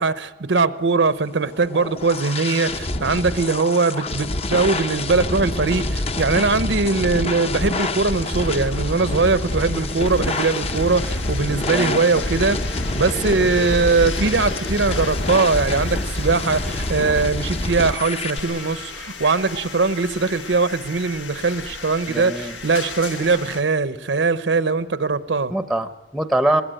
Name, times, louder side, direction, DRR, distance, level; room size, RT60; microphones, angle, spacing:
voice 1, 0.0-12.6 12.9-25.5, right 4 dB, 80° right, 0.8 m, -21 dB
sound 1, 1.4-18.4, left 2 dB, 35° left, 0.7 m, -26 dB
sound 2, 8.0-23.6, left 4 dB, 90° left, 1.6 m, -36 dB
voice 2, 11.5-12.0 22.1-22.5 25.5-26.6, right 1 dB, ahead, 0.7 m, -23 dB
21.5 x 19.5 x 9.1 m
head